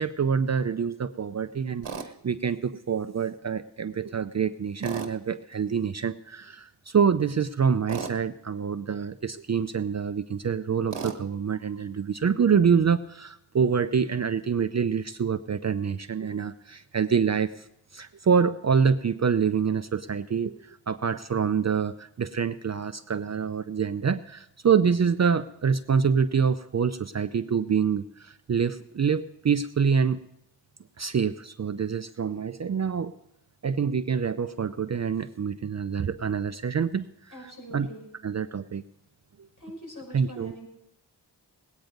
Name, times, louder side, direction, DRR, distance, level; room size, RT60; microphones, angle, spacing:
voice 1, 0.0-17.6 17.9-30.2 31.0-33.1 33.6-37.9 38.2-38.8 40.1-40.6, right 6 dB, 40° right, 12 dB, 0.5 m, -26 dB
Tools, 1.8-2.1 4.8-5.2 7.9-8.2 10.9-11.2, right 5 dB, 80° right, 1.5 m, -34 dB
voice 2, 37.3-38.1 39.6-40.7, right 1 dB, 45° left, -2 dB, 5.9 m, -43 dB
19.0 x 9.1 x 5.2 m, 0.82 s
wide cardioid pair, 65°, 42 cm